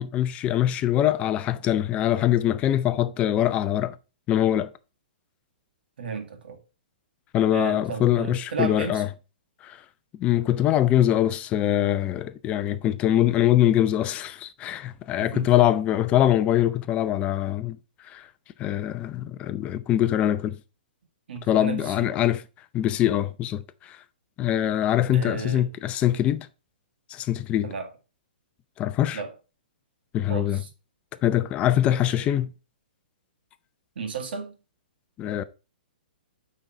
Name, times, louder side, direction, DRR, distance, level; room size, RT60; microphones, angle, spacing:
voice 1, 0.0-4.0 4.3-4.7 7.3-9.1 9.6-9.8 10.2-17.8 18.1-18.3 18.6-20.6 21.5-22.4 22.7-24.0 24.4-26.5 27.1-27.7 28.8-29.2 30.1-30.6 31.2-32.5 35.2-35.4, left 12 dB, 20° left, 0.5 m, -23 dB
voice 2, 6.0-6.6 7.5-9.0 15.2-15.5 21.3-22.1 25.1-25.7 27.6-27.9 29.1-29.3 30.3-30.7 34.0-34.5, right 5 dB, 75° right, 2.1 m, -34 dB
8.9 x 4.0 x 4.5 m
hypercardioid pair, 150°, 6 cm